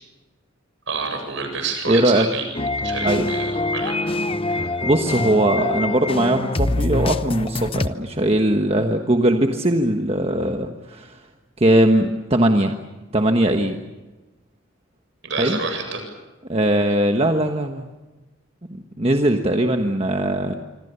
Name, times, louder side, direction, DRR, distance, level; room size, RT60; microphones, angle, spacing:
voice 1, 0.9-2.5 2.8-4.0 4.4-4.9 15.2-16.0, right 4 dB, 65° right, 4 dB, 7.8 m, -28 dB
voice 2, 1.9-2.3 3.0-3.3 4.8-11.2 11.6-12.8 13.1-13.8 15.4-15.6 16.5-17.9 19.0-20.6, right 1 dB, 30° right, 4 dB, 1.3 m, -20 dB
sound 1, 2.5-7.9, left 2 dB, 25° left, 0.8 m, -24 dB
26.5 x 25.5 x 6.9 m, 1.2 s
head